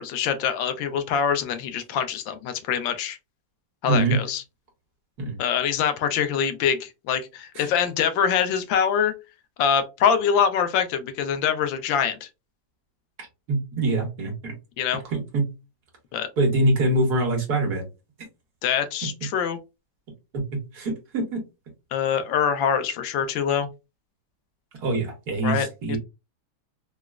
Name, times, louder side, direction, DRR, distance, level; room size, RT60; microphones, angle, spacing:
voice 1, 0.0-3.2 3.8-4.4 5.4-9.1 9.6-12.3 14.8-15.0 16.1-16.3 18.6-19.6 21.9-23.7 25.4-26.0, left 7 dB, 85° left, 1.3 m, -24 dB
voice 2, 3.9-4.2 5.2-5.4 7.5-7.7 13.5-14.5 15.1-15.5 16.4-17.8 20.3-20.4 20.7-21.4 24.8-26.0, right 2 dB, 60° right, 1.5 m, -24 dB
3.9 x 2.0 x 2.3 m
omnidirectional pair, 2.0 m